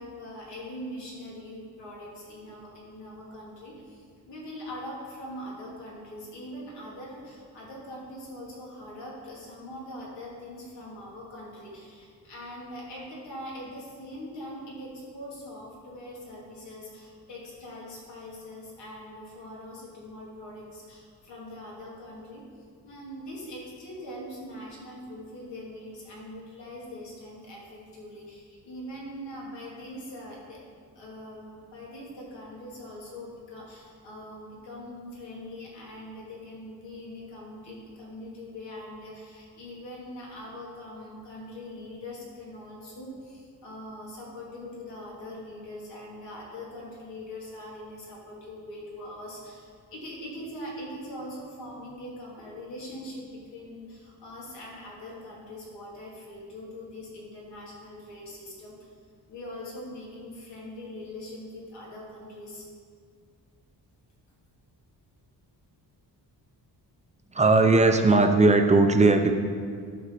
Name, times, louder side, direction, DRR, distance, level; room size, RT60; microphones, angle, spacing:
voice 1, 0.0-30.6 30.9-58.9 59.3-62.7, left 1 dB, 90° left, -4 dB, 2.9 m, -42 dB
voice 2, 67.3-69.3, right 3 dB, 15° right, 5 dB, 0.5 m, -18 dB
11.5 x 5.2 x 6.8 m, 2.2 s
wide cardioid pair, 170°, 41 cm